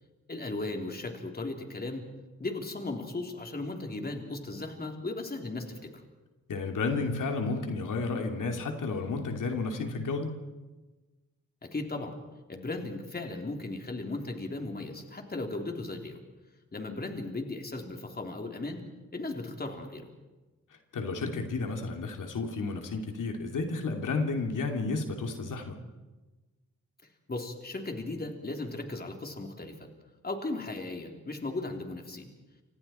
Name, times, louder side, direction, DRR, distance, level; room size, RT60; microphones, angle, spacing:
voice 1, 0.3-2.0 2.4-5.9 11.6-12.1 12.5-16.2 16.7-20.1 27.3-29.9 30.2-32.3, left 2 dB, 30° left, 3 dB, 3.3 m, -36 dB
voice 2, 6.5-10.3 20.9-25.7, left 3 dB, 85° left, 3 dB, 2.8 m, -32 dB
29.5 x 26.5 x 4.4 m, 1.2 s
wide cardioid pair, 120°, 31 cm